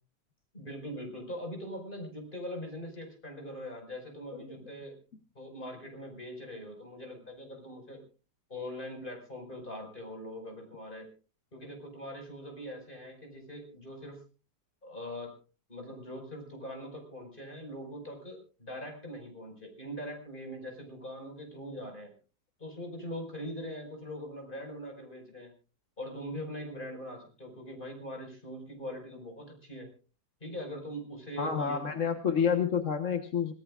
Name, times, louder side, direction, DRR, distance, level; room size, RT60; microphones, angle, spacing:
voice 1, 0.5-4.9 5.4-8.0 8.5-11.1 11.5-14.2 14.8-15.4 15.7-22.1 22.6-25.5 26.0-29.9 30.4-31.8, equal, 30° left, 2 dB, 5.6 m, -42 dB
voice 2, 31.4-33.5, left 7 dB, 50° left, 6 dB, 1.5 m, -28 dB
26.0 x 18.0 x 2.5 m, 0.35 s
omnidirectional pair, 1.8 m